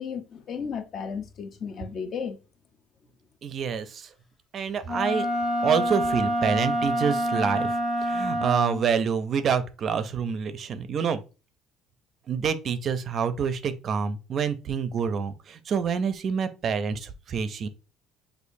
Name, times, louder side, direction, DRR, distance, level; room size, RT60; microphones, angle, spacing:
voice 1, 0.0-2.4, left 6 dB, 40° left, 0.6 m, -34 dB
voice 2, 3.4-4.1 4.5-5.3 5.6-11.2 12.3-17.7, right 6 dB, 40° right, 0.5 m, -27 dB
Wind instrument woodwind instrument, 4.9-8.9, equal, 25° left, 1.2 m, -27 dB
6.4 x 2.6 x 2.6 m
cardioid pair, 150°, 0 cm